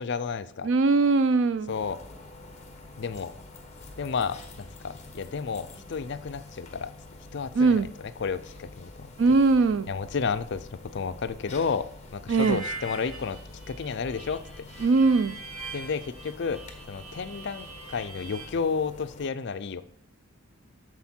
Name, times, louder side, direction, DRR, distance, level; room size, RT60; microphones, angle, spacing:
voice 1, 0.0-0.7 1.7-2.0 3.0-3.3 4.0-6.9 7.3-9.1 9.9-13.4 13.7-14.4 15.7-16.6 16.9-19.8, left 5 dB, 50° left, 12 dB, 0.4 m, -31 dB
voice 2, 0.6-1.7 7.6-7.9 9.2-9.9 12.3-12.6 14.8-15.4, right 3 dB, 60° right, 16 dB, 0.4 m, -21 dB
sound 1, 1.7-19.3, left 2 dB, 30° left, 1.1 m, -47 dB
Harmonica, 12.4-18.5, right 2 dB, 75° right, 2.6 m, -42 dB
13.0 x 4.4 x 4.4 m, 0.63 s
head